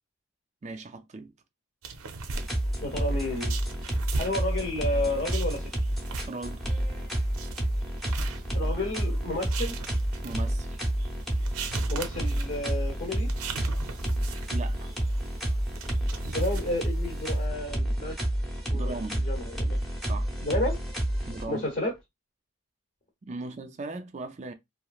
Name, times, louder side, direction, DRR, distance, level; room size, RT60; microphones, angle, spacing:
voice 1, 0.6-1.3 5.1-5.2 6.3-6.7 10.2-10.8 14.5-14.9 18.7-19.2 20.1-20.3 21.3-21.7 23.3-24.5, right 2 dB, 30° right, 0.4 m, -38 dB
sound 1, 1.8-17.5, right 4 dB, 80° right, 0.5 m, -40 dB
sound 2, 2.3-21.8, right 1 dB, ahead, 0.7 m, -29 dB
voice 2, 2.8-3.6 4.2-5.7 8.5-9.7 11.9-13.3 16.2-18.2 18.7-19.8 20.4-20.8 21.5-21.9, left 1 dB, 40° left, 0.8 m, -31 dB
2.9 x 2.4 x 2.3 m
head